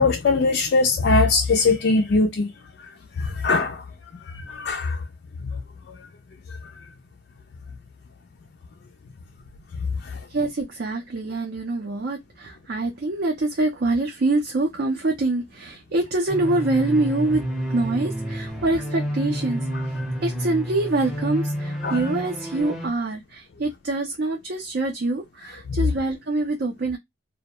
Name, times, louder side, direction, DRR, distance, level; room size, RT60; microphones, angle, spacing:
voice 1, 0.0-2.5 3.2-3.8 4.3-5.0 10.0-10.2 21.8-22.0 25.7-25.8, left 3 dB, 50° left, 0.3 m, -21 dB
voice 2, 10.3-27.0, right 2 dB, 50° right, 0.4 m, -25 dB
sound 1, 16.3-22.9, equal, ahead, 0.6 m, -29 dB
2.2 x 2.1 x 2.7 m
head